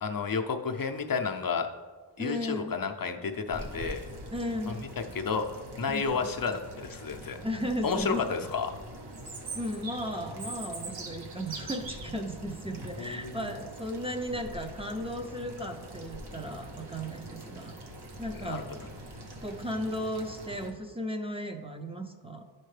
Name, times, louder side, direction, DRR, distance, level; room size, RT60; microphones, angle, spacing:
voice 1, 0.0-1.7 2.2-4.0 5.1-5.5 5.8-7.4 7.8-8.7 13.0-13.4 18.4-18.6, left 5 dB, 50° left, 5 dB, 0.6 m, -31 dB
voice 2, 2.2-2.7 4.3-4.9 5.9-6.2 7.4-8.4 9.5-17.7 18.2-18.8 19.4-22.4, equal, 15° right, 4 dB, 0.6 m, -35 dB
sound 1, 3.3-20.7, right 1 dB, 65° right, 1.2 m, -45 dB
Chirp tweet, 9.1-12.1, right 4 dB, 90° right, 1.0 m, -40 dB
11.0 x 4.4 x 3.3 m, 1.4 s
wide cardioid pair, 75°, 43 cm